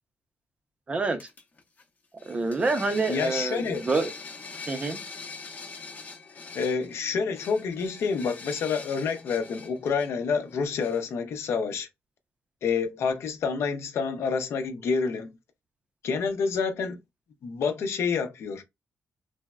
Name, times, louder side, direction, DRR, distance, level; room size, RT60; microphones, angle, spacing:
voice 1, 0.9-1.2 2.3-4.1 4.7-5.0, right 3 dB, 25° right, 0.5 m, -27 dB
sound 1, 1.2-1.8 2.2-11.1, left 4 dB, 40° left, 0.6 m, -43 dB
voice 2, 3.1-3.8 6.5-11.9 12.6-15.4 16.0-17.0 17.4-18.6, left 5 dB, 75° left, 0.6 m, -28 dB
3.3 x 2.0 x 2.3 m
wide cardioid pair, 155°, 5 cm